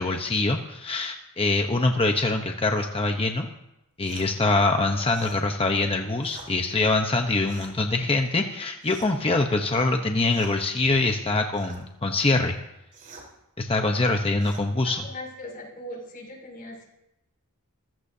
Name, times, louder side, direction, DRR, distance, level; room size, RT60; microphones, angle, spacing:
voice 1, 0.0-3.5 4.0-12.5 13.6-15.0, left 2 dB, 25° left, 4 dB, 0.9 m, -24 dB
sound 1, 4.0-4.3 5.1-5.4 6.2-6.5 7.4-7.8 8.8-9.3 10.2-10.6 11.5-11.8 12.9-13.3 14.4-14.7, right 3 dB, 40° right, 4.0 m, -46 dB
voice 2, 14.8-16.8, left 1 dB, 40° left, -2 dB, 6.2 m, -39 dB
26.0 x 15.5 x 2.8 m, 0.88 s
head